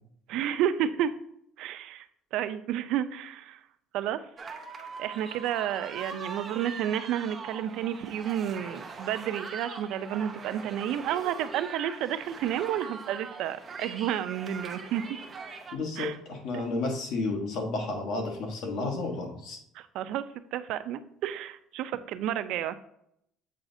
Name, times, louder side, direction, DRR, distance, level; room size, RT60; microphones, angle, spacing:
voice 1, 0.3-1.1 1.6-2.1 2.3-3.6 3.9-4.2 5.0-15.0 16.0-16.2 16.5-16.6 19.7-20.2 20.5-22.8, right 10 dB, 65° right, 12 dB, 0.4 m, -31 dB
sound 1, 4.4-15.8, right 5 dB, 25° right, 0.7 m, -42 dB
voice 2, 15.7-19.6, left 3 dB, 65° left, 2 dB, 1.2 m, -32 dB
7.4 x 4.9 x 2.6 m, 0.73 s
cardioid pair, 150°, 0 cm